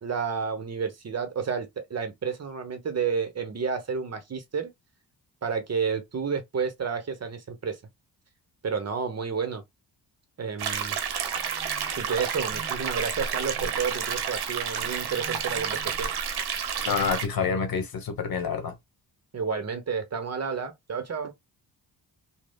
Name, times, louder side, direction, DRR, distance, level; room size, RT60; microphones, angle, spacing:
voice 1, 0.0-4.7 5.4-7.8 8.6-9.6 10.4-11.0 12.0-16.1 19.3-21.3, right 6 dB, 40° right, 0.8 m, -30 dB
sound 1, 10.6-17.3, right 7 dB, 70° right, 0.8 m, -30 dB
voice 2, 16.8-18.7, left 6 dB, 60° left, 0.9 m, -27 dB
3.2 x 2.1 x 2.2 m
cardioid pair, 85°, 40 cm